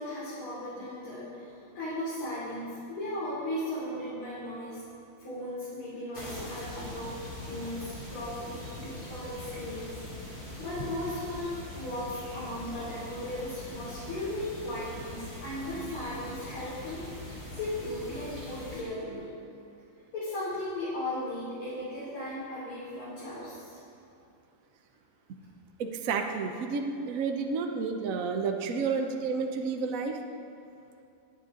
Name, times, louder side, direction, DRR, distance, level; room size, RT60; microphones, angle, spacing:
voice 1, 0.0-4.8 5.2-19.3 20.1-23.8, left 1 dB, 85° left, -11 dB, 4.0 m, -37 dB
sound 1, 6.1-18.8, left 1 dB, 30° left, 2.9 m, -42 dB
voice 2, 25.8-30.2, right 5 dB, 60° right, 4 dB, 0.9 m, -30 dB
20.0 x 8.3 x 3.8 m, 2.7 s
omnidirectional pair, 2.3 m